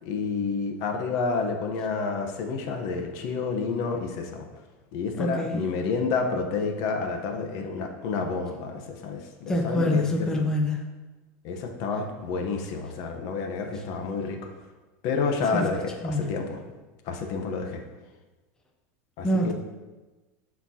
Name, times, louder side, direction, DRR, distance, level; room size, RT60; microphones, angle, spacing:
voice 1, 0.0-4.5 4.9-10.4 11.4-14.5 15.0-16.6 17.0-17.8 19.2-19.5, left 4 dB, 55° left, 4 dB, 1.0 m, -29 dB
voice 2, 5.2-5.6 9.5-10.8 15.5-15.6 16.0-16.3 19.2-19.5, left 1 dB, 10° left, 0 dB, 0.7 m, -25 dB
11.5 x 4.3 x 2.8 m, 1.2 s
supercardioid pair, 145°, 8 cm